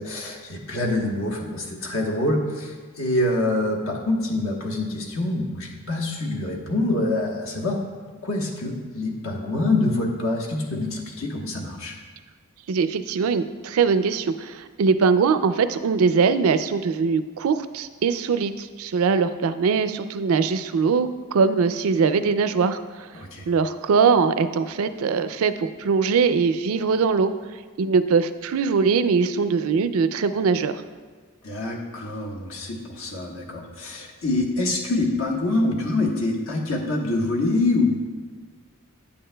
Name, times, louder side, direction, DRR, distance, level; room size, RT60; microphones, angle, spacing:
voice 1, 0.0-7.8 8.2-11.9 23.1-23.4 31.4-37.9, left 2 dB, 70° left, -1 dB, 1.2 m, -25 dB
voice 2, 12.7-22.8 23.5-27.3 27.8-30.8, right 5 dB, 75° right, 12 dB, 0.4 m, -21 dB
8.6 x 8.3 x 2.2 m, 1.5 s
head